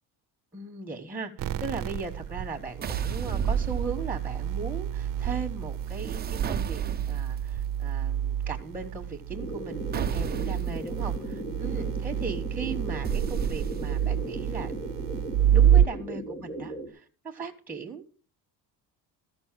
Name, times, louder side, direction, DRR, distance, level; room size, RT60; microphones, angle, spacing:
voice 1, 0.5-6.8 7.1-14.7 15.5-18.0, right 4 dB, 5° right, 1.3 m, -38 dB
sound 1, 1.4-15.9, right 10 dB, 55° right, 0.8 m, -28 dB
sound 2, 2.8-4.4 5.8-7.4 9.9-10.8 13.0-14.2, right 8 dB, 25° right, 0.6 m, -31 dB
sound 3, 9.3-16.9, right 1 dB, 25° left, 6.7 m, -37 dB
14.0 x 5.5 x 7.5 m
cardioid pair, 160°, 39 cm